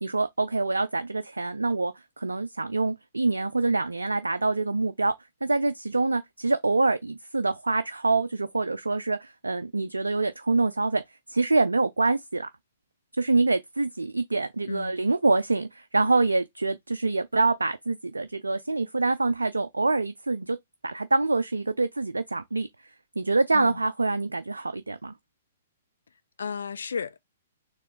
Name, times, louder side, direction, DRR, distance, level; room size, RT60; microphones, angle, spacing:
voice 1, 0.0-5.1 5.4-11.0 11.3-12.5 13.2-20.6 20.8-22.7 23.2-25.1, right 3 dB, 85° right, 0.4 m, -25 dB
voice 2, 26.4-27.2, left 6 dB, 70° left, 0.5 m, -33 dB
4.4 x 3.0 x 3.6 m
figure-of-eight pair, 120°, 0 cm